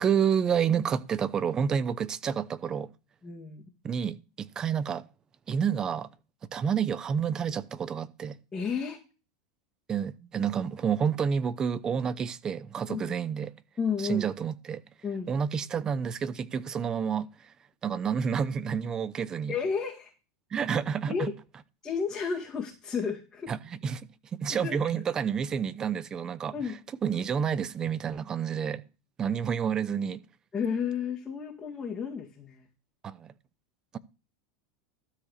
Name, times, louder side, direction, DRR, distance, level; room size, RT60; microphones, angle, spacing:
voice 1, 0.0-2.9 3.8-5.0 5.5-6.1 6.5-8.4 9.9-13.5 14.0-14.8 15.3-17.3 17.8-19.5 20.5-21.3 23.5-26.5 27.0-28.8 29.2-30.2 33.0-33.3, right 7 dB, 25° right, 0.7 m, -29 dB
voice 2, 3.2-3.6 8.5-9.0 12.9-13.1 13.8-14.3 15.0-15.3 19.5-20.1 21.1-21.3 21.8-23.5 24.6-24.8 26.5-26.8 30.5-32.6, left 6 dB, 20° left, 2.2 m, -32 dB
12.5 x 4.7 x 6.5 m
hypercardioid pair, 110°, 2 cm